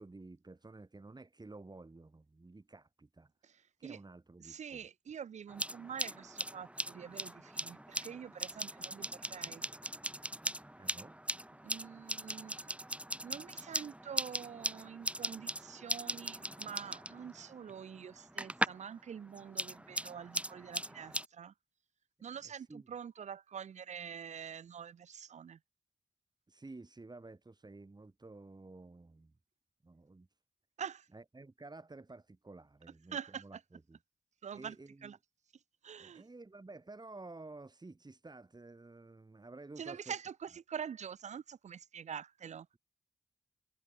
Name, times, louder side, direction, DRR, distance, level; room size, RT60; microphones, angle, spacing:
voice 1, 0.0-3.3 3.8-4.9 10.8-11.2 22.4-22.9 26.5-29.3 29.8-30.3 31.1-34.0 34.5-35.2 36.0-40.1, right 3 dB, 35° right, 5.4 m, -52 dB
voice 2, 4.4-9.6 11.6-12.7 13.2-21.5 22.2-25.6 30.8-31.1 33.1-33.4 34.4-34.8 35.0-35.2 35.8-36.2 39.8-42.7, right 7 dB, 85° right, 2.2 m, -46 dB
sound 1, 5.5-18.9 19.2-21.3, right 1 dB, 10° right, 4.7 m, -40 dB
cardioid pair, 45°, 12 cm